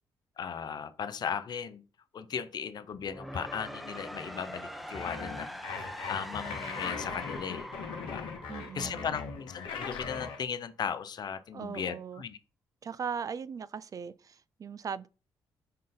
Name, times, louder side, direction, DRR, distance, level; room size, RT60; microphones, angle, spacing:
voice 1, 0.4-1.8 2.1-8.3 8.7-12.4, left 7 dB, 55° left, 0.5 m, -37 dB
sound 1, 2.9-9.8, equal, ahead, 0.7 m, -43 dB
sound 2, 4.9-10.4, left 5 dB, 75° left, 0.9 m, -39 dB
voice 2, 8.5-9.2 11.5-12.2 12.8-15.1, right 6 dB, 45° right, 0.3 m, -39 dB
5.4 x 2.5 x 3.8 m
supercardioid pair, 55°, 9 cm